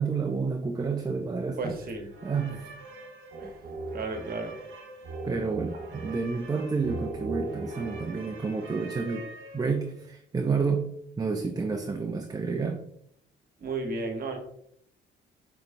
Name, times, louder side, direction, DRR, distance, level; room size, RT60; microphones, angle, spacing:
voice 1, 0.0-1.7 2.2-2.6 5.2-9.2 9.5-12.8, right 4 dB, 20° right, 4 dB, 0.4 m, -30 dB
voice 2, 1.6-2.1 2.4-2.6 3.4-3.6 3.9-4.6 13.6-14.4, right 3 dB, 50° right, 4 dB, 1.0 m, -34 dB
sound 1, 2.1-10.0, right 2 dB, 80° right, 0.9 m, -39 dB
6.6 x 3.1 x 2.5 m, 0.75 s
cardioid pair, 90°, 20 cm